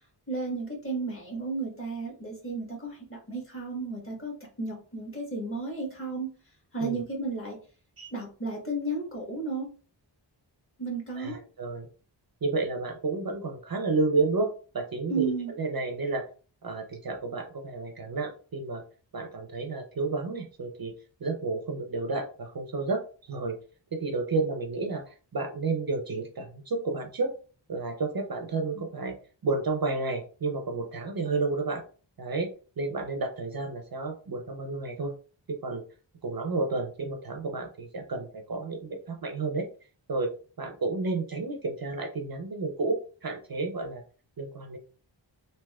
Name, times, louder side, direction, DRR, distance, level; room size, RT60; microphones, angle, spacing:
voice 1, 0.3-6.3 6.7-7.6 8.1-9.7 10.8-11.4 15.1-15.5, right 3 dB, 25° left, -2 dB, 1.3 m, -33 dB
voice 2, 11.2-11.9 12.4-16.3 16.6-18.8 19.1-20.9 21.2-23.6 23.9-27.3 27.7-29.1 29.4-31.8 32.2-35.1 35.5-35.8 36.2-39.7 40.1-40.3 40.6-44.0 44.4-44.8, right 3 dB, 50° right, 3 dB, 0.5 m, -31 dB
3.4 x 2.7 x 2.2 m, 0.38 s
wide cardioid pair, 75°, 47 cm